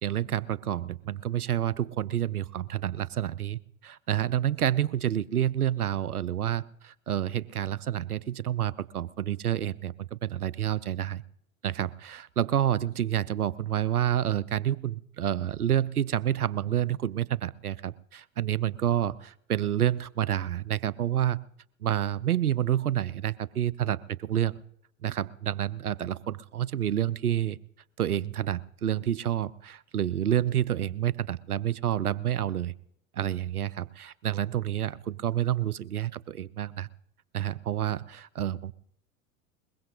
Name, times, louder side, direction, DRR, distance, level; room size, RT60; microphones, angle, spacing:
voice 1, 0.0-11.2 11.6-21.4 21.8-24.6 25.0-27.6 28.0-32.7 33.1-36.9 37.3-38.7, right 11 dB, 80° right, 21 dB, 0.7 m, -29 dB
22.5 x 21.5 x 2.8 m, 0.72 s
figure-of-eight pair, 90°, 44 cm